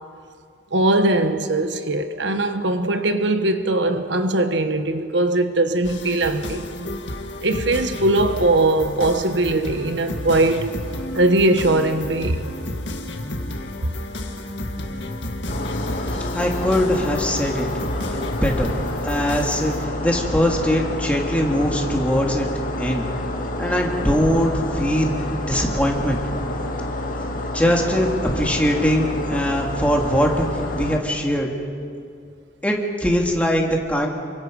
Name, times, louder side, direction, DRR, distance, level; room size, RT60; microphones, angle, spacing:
voice 1, 0.7-6.7 7.4-10.7 11.1-12.5 13.8-13.9, right 2 dB, 90° right, 1.3 m, -20 dB
sound 1, 5.8-19.8, left 1 dB, 90° left, 1.9 m, -31 dB
sound 2, 15.5-31.0, left 1 dB, 50° left, 2.0 m, -28 dB
voice 2, 16.3-17.7 18.1-18.8 19.0-22.5 22.8-23.1 23.6-25.1 25.5-26.2 27.5-28.1 28.3-30.5 30.8-31.5 32.6-34.1, equal, 10° left, 2.5 m, -21 dB
28.5 x 24.0 x 5.4 m
head